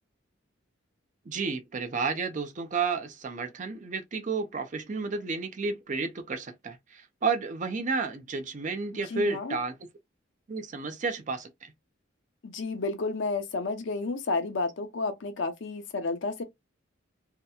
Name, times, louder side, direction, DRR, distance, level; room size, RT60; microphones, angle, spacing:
voice 1, 1.3-9.7 10.5-11.7, right 4 dB, 40° right, 0.5 m, -31 dB
voice 2, 9.1-9.6 12.4-16.4, left 3 dB, 65° left, 0.6 m, -31 dB
2.8 x 2.1 x 2.2 m
head